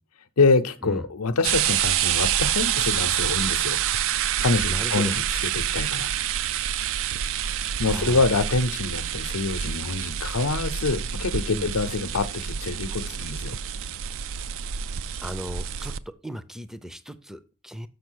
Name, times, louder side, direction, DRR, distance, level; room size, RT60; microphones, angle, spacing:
voice 1, 0.4-3.8 4.4-6.1 7.8-13.6, left 3 dB, 85° left, 0.7 m, -25 dB
sound 1, 1.4-16.0, right 10 dB, 65° right, 0.4 m, -27 dB
voice 2, 4.7-5.1 7.8-8.2 11.5-11.7 15.2-15.9 16.2-17.9, equal, ahead, 0.5 m, -36 dB
6.8 x 5.4 x 6.2 m
head